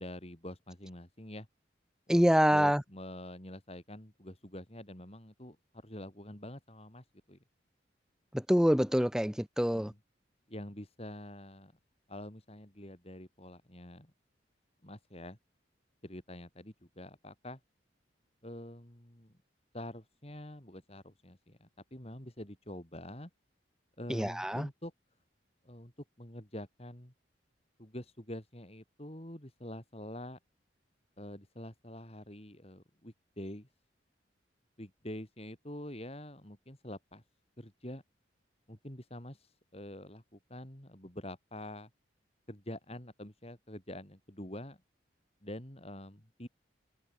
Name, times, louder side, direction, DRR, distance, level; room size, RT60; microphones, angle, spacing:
voice 1, 0.0-1.5 2.1-7.4 9.7-10.0 10.5-11.7 12.1-14.1 14.8-15.4 16.0-17.6 18.4-19.3 19.7-23.3 24.0-24.9 25.6-25.9 26.2-27.1 27.8-30.4 31.2-33.7 34.8-37.2 37.6-38.0 38.7-41.9 42.5-44.8 45.4-46.5, left 1 dB, 30° left, 4.3 m, -46 dB
voice 2, 2.1-2.8 8.5-9.9 24.1-24.7, equal, 5° right, 0.8 m, -26 dB
head